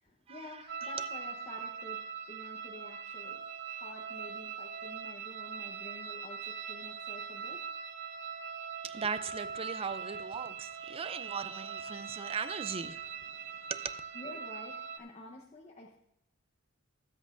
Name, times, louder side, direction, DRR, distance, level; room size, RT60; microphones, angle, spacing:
voice 1, 0.0-2.0 2.3-3.4 3.7-7.6 13.6-13.7 14.1-16.0, left 1 dB, 30° left, 0.9 m, -50 dB
sound 1, 0.7-15.0, right 6 dB, 55° right, 0.7 m, -41 dB
voice 2, 8.8-13.0 13.7-14.0, right 6 dB, 30° right, 0.4 m, -38 dB
19.5 x 7.9 x 2.5 m
head